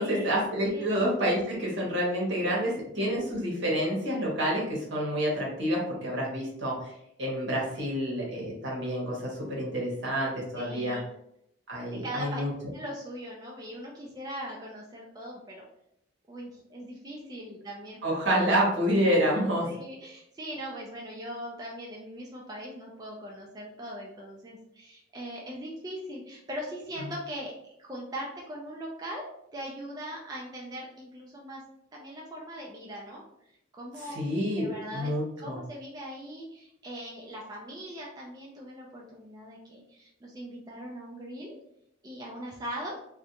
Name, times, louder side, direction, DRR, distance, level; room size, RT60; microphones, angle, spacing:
voice 1, 0.0-6.8 7.2-11.0 11.7-12.5 18.0-19.7 27.0-27.1 33.9-35.6, equal, 70° right, -3 dB, 1.0 m, -28 dB
voice 2, 10.5-11.0 12.0-12.4 12.7-15.6 16.3-18.5 19.1-27.5 27.8-31.6 31.9-33.2 33.7-34.2 34.6-41.6 42.0-43.0, equal, 20° right, -3 dB, 0.3 m, -40 dB
2.4 x 2.2 x 2.8 m, 0.75 s
head